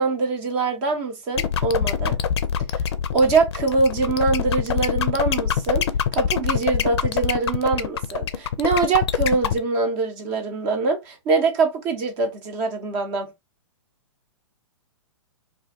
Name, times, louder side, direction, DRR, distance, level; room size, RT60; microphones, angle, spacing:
voice 1, 0.0-2.2 3.1-5.8 6.1-13.3, right 4 dB, 30° right, 0.7 m, -23 dB
sound 1, 1.4-9.6, left 8 dB, 55° left, 0.4 m, -24 dB
2.6 x 2.1 x 3.9 m
figure-of-eight pair, 115°, 16 cm